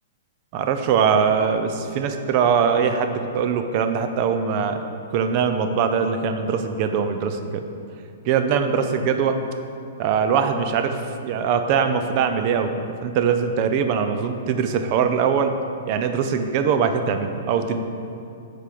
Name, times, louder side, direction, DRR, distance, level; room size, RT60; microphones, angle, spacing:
voice 1, 0.5-4.8 5.1-7.7 8.3-9.4 10.0-12.7 13.0-15.5 15.9-17.8, right 6 dB, 30° right, 7 dB, 0.5 m, -22 dB
8.3 x 5.1 x 5.9 m, 2.5 s
hypercardioid pair, 175°, 0 cm